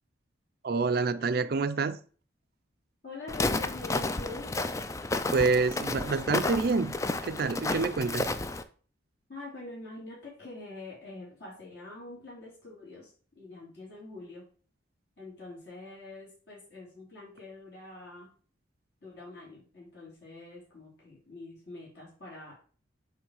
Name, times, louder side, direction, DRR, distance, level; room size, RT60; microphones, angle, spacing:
voice 1, 0.6-2.0 5.3-7.0 7.2-8.3, right 4 dB, 50° right, 0.4 m, -27 dB
voice 2, 3.0-4.5 9.3-14.4 15.2-18.3 19.0-22.5, left 2 dB, 55° left, 3.2 m, -45 dB
Walk footsteps, 3.3-8.6, left 2 dB, 15° left, 0.3 m, -31 dB
8.1 x 3.3 x 4.8 m
head